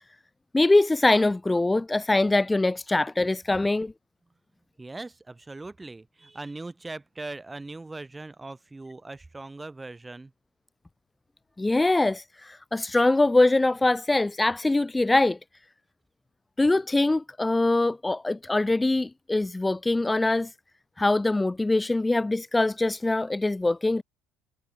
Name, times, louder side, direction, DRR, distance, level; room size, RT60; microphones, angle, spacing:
voice 1, 0.5-3.9 11.6-15.4 16.6-20.5 21.0-24.0, left 2 dB, 10° left, 0.9 m, -23 dB
voice 2, 4.8-10.3, right 2 dB, 10° right, 5.1 m, -40 dB
cardioid pair, 135°, 0 cm